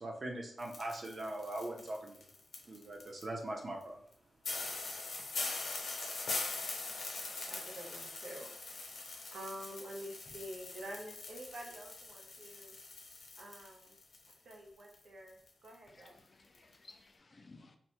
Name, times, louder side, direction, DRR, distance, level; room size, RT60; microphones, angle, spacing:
voice 1, 0.0-2.3 2.7-4.0, right 1 dB, 40° right, 0 dB, 0.5 m, -41 dB
sound 1, 0.6-3.2 3.8-3.9 4.1-4.2 4.4-14.5 14.8-15.8 16.1-16.2 16.6-16.7, left 3 dB, 65° left, 0.6 m, -42 dB
voice 2, 7.5-8.5 9.3-12.8 13.4-14.0 14.4-16.2, right 1 dB, 80° right, -1 dB, 0.7 m, -48 dB
voice 3, 15.9-17.8, left 3 dB, 30° left, 5 dB, 0.3 m, -59 dB
2.9 x 2.0 x 3.0 m, 0.65 s
wide cardioid pair, 145°, 0 cm